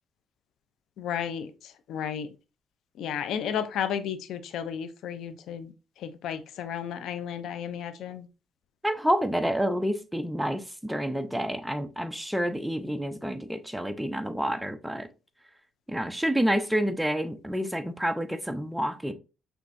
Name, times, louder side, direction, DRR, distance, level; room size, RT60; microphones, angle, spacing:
voice 1, 1.0-2.3 3.0-8.3, left 8 dB, 80° left, 0.5 m, -33 dB
voice 2, 8.8-15.1 15.9-19.1, equal, 5° right, 0.6 m, -28 dB
5.8 x 3.4 x 2.6 m
cardioid pair, 90°, 0 cm